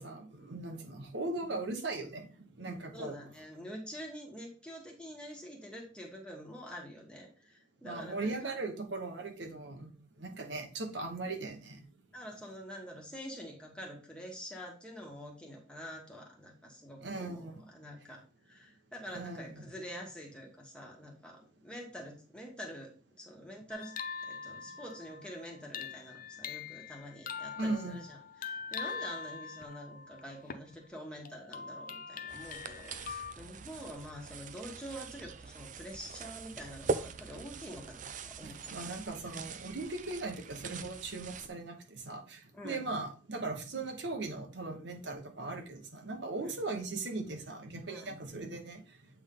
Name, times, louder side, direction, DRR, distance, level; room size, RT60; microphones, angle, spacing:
voice 1, 0.0-3.2 7.8-9.9 10.2-11.8 17.0-17.6 19.1-19.7 27.6-28.0 38.4-48.8, right 2 dB, 70° right, 4 dB, 1.2 m, -39 dB
voice 2, 2.9-8.5 12.1-24.0 24.3-38.7 42.5-42.9 46.4-46.6 47.9-48.2, equal, 5° left, -1 dB, 1.5 m, -46 dB
sound 1, 23.7-30.7 31.2-33.3, left 6 dB, 50° left, 0.6 m, -43 dB
sound 2, 32.3-41.5, right 4 dB, 45° right, 0.5 m, -42 dB
7.9 x 3.6 x 3.8 m, 0.38 s
head